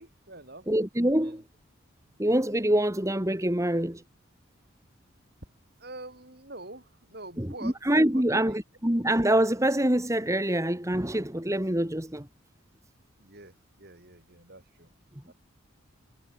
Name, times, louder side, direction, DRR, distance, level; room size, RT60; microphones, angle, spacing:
voice 1, 0.0-0.7 1.1-1.4 5.8-7.8 8.1-8.6 13.2-14.9 15.3-15.4, right 2 dB, 45° right, 6.3 m, -45 dB
voice 2, 0.7-1.4 2.2-4.0 7.4-12.3, right 1 dB, 15° right, 1.9 m, -25 dB
head